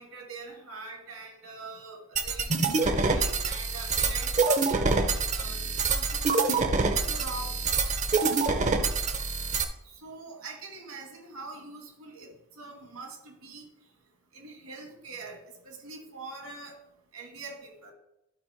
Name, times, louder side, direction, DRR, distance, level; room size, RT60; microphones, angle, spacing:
voice 1, 0.0-2.5 2.8-4.9 5.3-6.4 6.9-7.6 9.8-13.7 14.3-16.7 17.1-17.9, right 3 dB, 80° right, 1 dB, 2.3 m, -44 dB
sound 1, 2.2-9.6, right 4 dB, 35° right, 0.6 m, -26 dB
11.5 x 4.2 x 4.5 m, 0.85 s
head